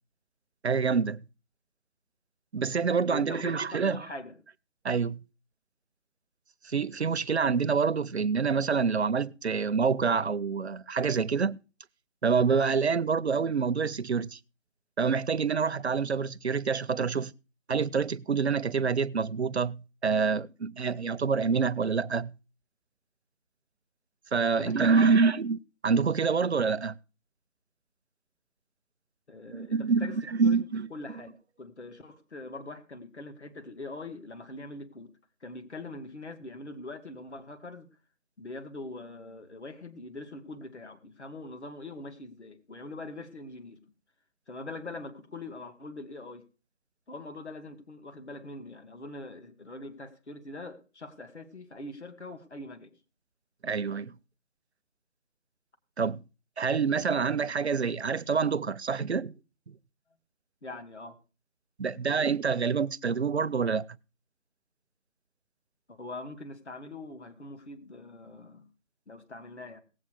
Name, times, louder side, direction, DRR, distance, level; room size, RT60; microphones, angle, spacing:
voice 1, 0.6-1.2 2.5-4.1 4.8-5.2 6.6-11.6 12.2-14.4 15.0-17.3 17.7-22.3 24.3-26.9 29.5-30.9 53.6-54.1 56.0-56.2 56.6-59.3 59.7-59.8 61.8-63.9, right 5 dB, 55° right, 0.5 m, -27 dB
voice 2, 3.1-4.4 24.6-25.2 29.3-30.2 30.4-30.6 30.9-35.1 35.4-37.9 38.4-43.8 44.5-46.4 47.1-52.9 60.6-61.2 65.9-68.7 69.1-69.8, left 2 dB, 60° left, 2.3 m, -42 dB
18.0 x 8.0 x 5.0 m
figure-of-eight pair, 170°, 39 cm